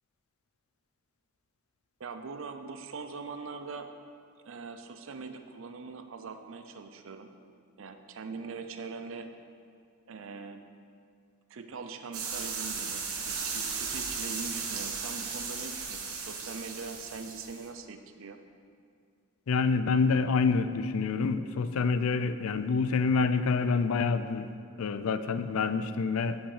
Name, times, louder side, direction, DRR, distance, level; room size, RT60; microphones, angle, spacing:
voice 1, 2.0-3.9 4.4-7.3 7.8-9.3 10.1-10.6 11.5-18.4, right 4 dB, 65° right, 7 dB, 0.5 m, -42 dB
sound 1, 12.1-17.7, right 5 dB, 85° right, 1.1 m, -36 dB
voice 2, 19.5-24.5 24.8-26.4, left 4 dB, 75° left, 11 dB, 0.4 m, -27 dB
8.7 x 5.4 x 4.9 m, 2.3 s
head